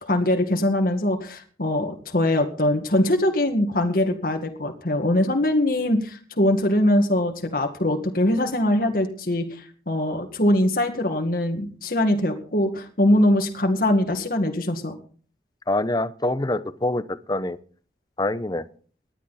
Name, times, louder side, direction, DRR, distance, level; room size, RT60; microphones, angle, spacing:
voice 1, 0.0-14.9, left 1 dB, 55° left, 4 dB, 2.0 m, -22 dB
voice 2, 15.7-17.6 18.2-18.7, left 2 dB, 25° left, 14 dB, 0.8 m, -25 dB
19.0 x 11.5 x 4.2 m, 0.43 s
head